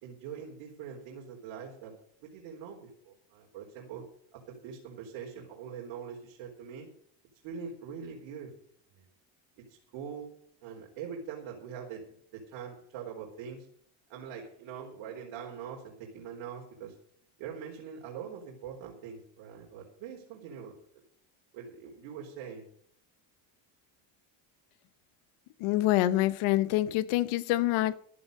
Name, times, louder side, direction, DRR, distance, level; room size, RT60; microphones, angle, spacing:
voice 1, 0.0-4.0 4.3-6.9 7.4-8.5 8.9-9.1 9.6-10.3 10.6-13.7 14.1-17.0 17.4-20.7 21.5-22.7, right 7 dB, 80° right, 4.2 m, -43 dB
voice 2, 25.6-28.0, left 15 dB, 75° left, 1.1 m, -26 dB
15.0 x 10.5 x 5.4 m
cardioid pair, 110°, 50 cm